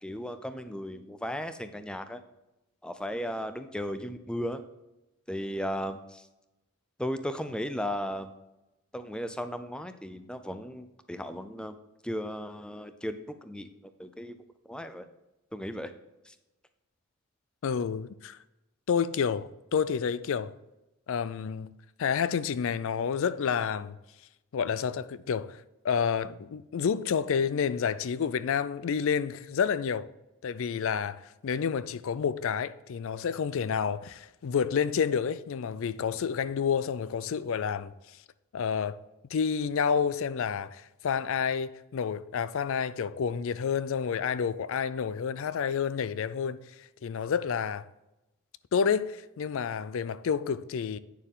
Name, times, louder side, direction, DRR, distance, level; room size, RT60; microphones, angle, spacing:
voice 1, 0.0-2.2 2.8-4.6 5.3-6.2 7.0-8.3 8.9-11.7 12.0-13.7 14.0-14.4 14.7-15.1 15.5-15.9 16.3-16.4, equal, 5° left, 0.5 m, -35 dB
voice 2, 17.6-18.4 18.9-20.5 21.1-21.7 22.0-24.0 24.5-30.1 30.4-37.9 38.5-39.0 39.3-47.9 48.7-51.0, left 6 dB, 65° left, 0.4 m, -29 dB
9.1 x 6.6 x 3.8 m
head